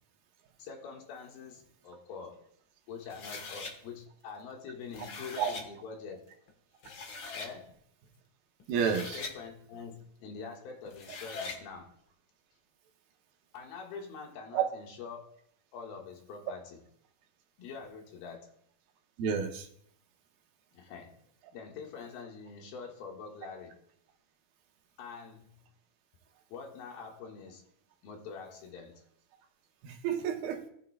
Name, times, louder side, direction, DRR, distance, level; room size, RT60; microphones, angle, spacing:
voice 1, 0.6-2.4 2.9-6.3 7.3-7.8 9.1-11.9 13.5-15.3 15.7-16.8 17.6-18.5 20.7-21.1 21.5-23.8 25.0-25.5 26.5-27.6 28.0-29.0, left 5 dB, 85° left, 1 dB, 3.4 m, -45 dB
sound 1, 3.1-3.7 4.7-5.7 6.5-6.6 6.8-7.5 8.6-9.4 10.9-11.6, left 4 dB, 65° left, 1.2 m, -42 dB
voice 2, 8.7-9.2 14.5-14.6 19.2-19.7 29.8-30.7, right 7 dB, 90° right, 3 dB, 2.9 m, -30 dB
18.0 x 9.1 x 2.3 m, 0.68 s
omnidirectional pair, 4.2 m